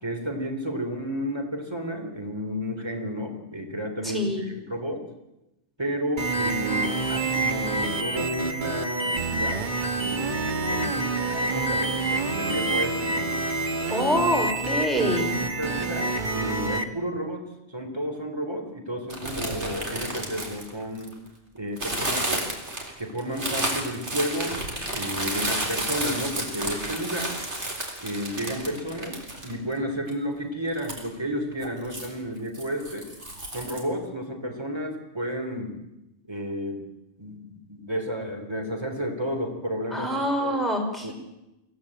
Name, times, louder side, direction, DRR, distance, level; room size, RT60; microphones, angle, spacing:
voice 1, 0.0-5.0 5.8-9.7 10.0-13.3 15.2-21.1 21.5-22.5 23.0-24.6 24.9-27.4 28.0-33.1 33.5-35.8 36.3-36.8 37.2-40.6 41.0-41.1, equal, 20° right, 4 dB, 3.4 m, -32 dB
voice 2, 4.0-4.5 13.9-15.4 39.9-41.1, equal, ahead, 1 dB, 5.1 m, -25 dB
sound 1, 6.2-16.8, right 3 dB, 45° right, 1.6 m, -27 dB
sound 2, 19.1-21.3 21.8-29.7 30.1-30.2 30.7-31.1 31.6-32.1 32.5-33.8, right 1 dB, 80° right, 4.1 m, -31 dB
23.5 x 16.5 x 8.8 m, 0.94 s
omnidirectional pair, 1.2 m